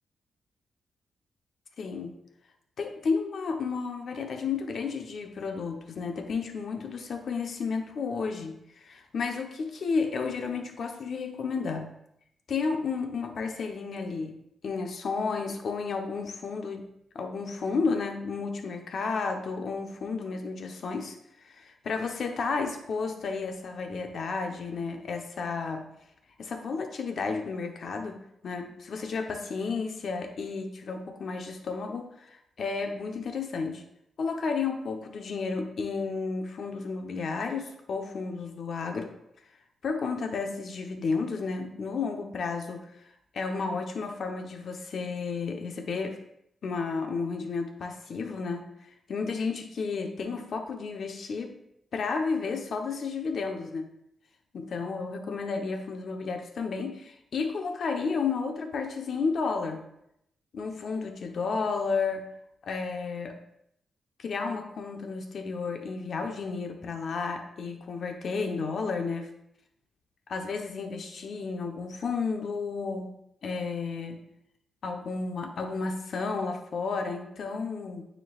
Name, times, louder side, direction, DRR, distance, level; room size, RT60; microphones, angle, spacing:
voice 1, 1.8-2.1 2.8-11.9 12.5-14.4 14.6-21.1 21.4-25.8 26.4-33.8 34.2-39.1 39.8-43.1 43.3-46.2 46.6-48.6 49.1-51.6 51.9-53.9 54.5-59.8 60.5-62.3 62.6-63.4 64.2-69.3 70.3-73.1 73.4-74.2 74.8-78.0, left 4 dB, 65° left, 4 dB, 0.9 m, -32 dB
9.0 x 4.5 x 2.4 m, 0.78 s
cardioid pair, 90°, 0 cm